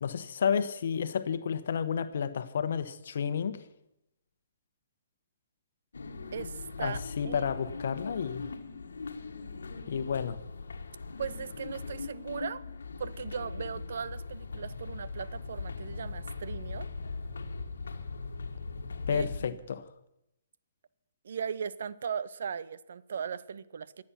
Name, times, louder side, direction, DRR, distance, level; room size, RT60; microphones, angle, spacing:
voice 1, 0.0-3.6 6.8-8.5 9.9-10.4 19.1-19.8, left 7 dB, 65° left, 12 dB, 1.1 m, -31 dB
sound 1, 5.9-19.4, left 4 dB, 80° left, 1.5 m, -40 dB
voice 2, 6.3-7.5 11.2-12.6 13.0-16.9 19.1-19.6 21.2-24.0, right 7 dB, 65° right, 17 dB, 0.7 m, -38 dB
25.0 x 8.7 x 5.9 m, 0.85 s
hypercardioid pair, 135°, 0 cm